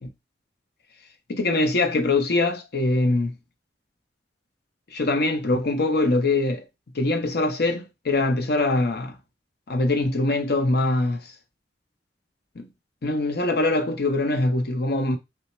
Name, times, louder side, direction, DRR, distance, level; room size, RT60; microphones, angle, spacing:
voice 1, 1.3-3.4 4.9-6.6 6.9-9.1 9.7-11.3 12.6-12.7 13.0-15.2, left 2 dB, 60° left, 0.7 m, -23 dB
3.0 x 2.1 x 4.1 m
head